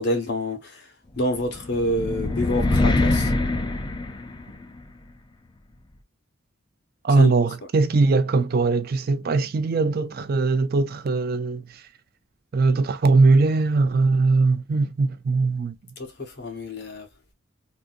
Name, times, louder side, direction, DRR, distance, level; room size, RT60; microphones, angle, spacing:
voice 1, 0.0-3.3 7.1-7.3 16.0-17.1, left 1 dB, 55° left, 1.1 m, -28 dB
sound 1, 1.3-4.8, left 2 dB, 20° left, 0.5 m, -24 dB
voice 2, 7.0-11.6 12.5-15.7, right 3 dB, 50° right, 0.4 m, -20 dB
3.8 x 2.6 x 2.4 m
head